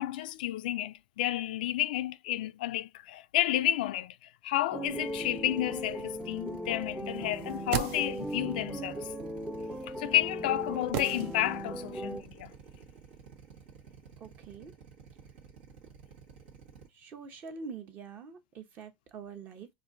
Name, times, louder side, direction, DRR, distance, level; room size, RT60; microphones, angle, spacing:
voice 1, 0.0-9.1 9.8-12.5, left 14 dB, 85° left, 0.3 m, -31 dB
sound 1, 4.7-12.2, right 1 dB, 10° right, 0.5 m, -38 dB
Drill, 4.9-16.9, right 6 dB, 85° right, 1.3 m, -52 dB
sound 2, 7.3-8.5 10.9-11.8 12.1-12.2, right 10 dB, 60° right, 0.6 m, -36 dB
voice 2, 14.2-14.7 16.9-19.7, right 5 dB, 40° right, 1.0 m, -45 dB
4.4 x 2.6 x 2.6 m
supercardioid pair, 120°, 5 cm